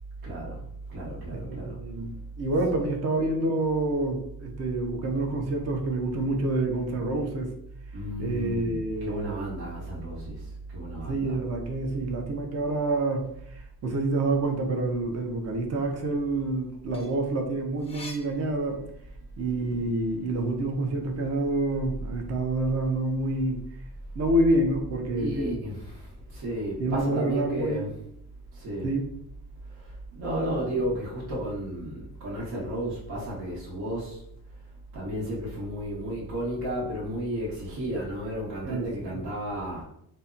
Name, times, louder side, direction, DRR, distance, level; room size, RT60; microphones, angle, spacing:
voice 1, 0.2-1.8 2.7-2.9 7.9-11.4 25.2-28.0 28.5-29.0 29.6-39.8, right 1 dB, 75° right, -4 dB, 1.1 m, -33 dB
voice 2, 1.5-2.1 2.4-7.5 8.2-9.5 11.1-18.8 19.4-23.6 24.2-25.6 26.8-27.8 28.8-29.1 38.6-38.9 39.1-39.2, right 2 dB, 45° right, 3 dB, 0.5 m, -27 dB
sound 1, 16.8-19.3 19.8-21.2, left 1 dB, 15° left, 0.3 m, -48 dB
2.8 x 2.1 x 2.4 m, 0.73 s
cardioid pair, 145°, 38 cm